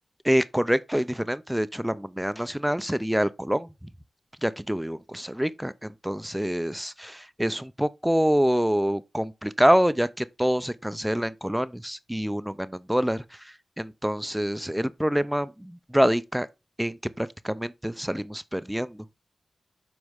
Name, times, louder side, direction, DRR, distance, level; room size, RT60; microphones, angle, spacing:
voice 1, 0.2-3.9 4.4-16.5 16.8-19.2, equal, 5° right, 0.4 m, -26 dB
7.9 x 5.3 x 3.4 m
wide cardioid pair, 115°, 0 cm